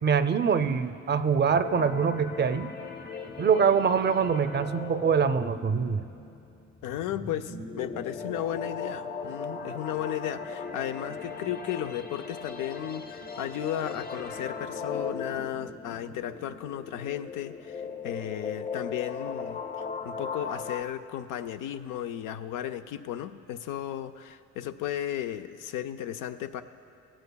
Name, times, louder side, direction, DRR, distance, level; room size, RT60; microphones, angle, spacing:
voice 1, 0.0-2.7 3.4-6.0, right 6 dB, 35° right, 11 dB, 0.5 m, -24 dB
sound 1, 1.5-20.8, left 5 dB, 30° left, 0.7 m, -38 dB
voice 2, 6.8-26.6, left 11 dB, 90° left, 9 dB, 0.5 m, -35 dB
17.0 x 15.0 x 2.3 m, 2.5 s
cardioid pair, 90°, 30 cm